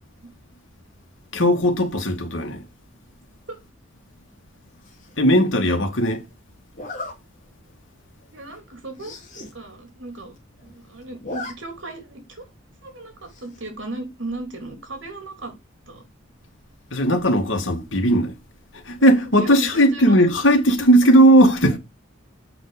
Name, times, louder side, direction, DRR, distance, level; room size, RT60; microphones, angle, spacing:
voice 1, 1.3-2.6 5.2-6.3 16.9-18.3 18.7-21.8, right 1 dB, 70° left, 2.3 m, -17 dB
Zipper (clothing), 4.8-5.2 6.7-7.1 7.7-7.9 8.2-8.3 8.5-8.6 8.9-9.5 9.9-10.0 10.2-10.7 11.0-11.5 11.9-12.0 13.3-13.7, left 2 dB, 40° left, 2.8 m, -36 dB
voice 2, 8.3-9.2 9.5-10.3 10.6-12.4 12.8-15.5 15.9-16.0 19.0-20.2 21.0-21.5, right 2 dB, 70° right, 3.4 m, -36 dB
8.1 x 6.1 x 5.1 m
head